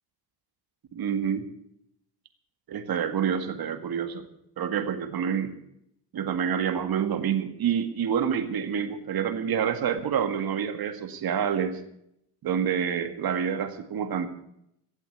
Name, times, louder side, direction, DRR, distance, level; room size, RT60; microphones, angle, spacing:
voice 1, 0.9-1.4 2.7-4.2 4.6-5.5 6.1-11.8 12.4-14.3, right 8 dB, 55° right, 8 dB, 2.0 m, -27 dB
16.0 x 8.2 x 8.1 m, 0.77 s
supercardioid pair, 65°, 43 cm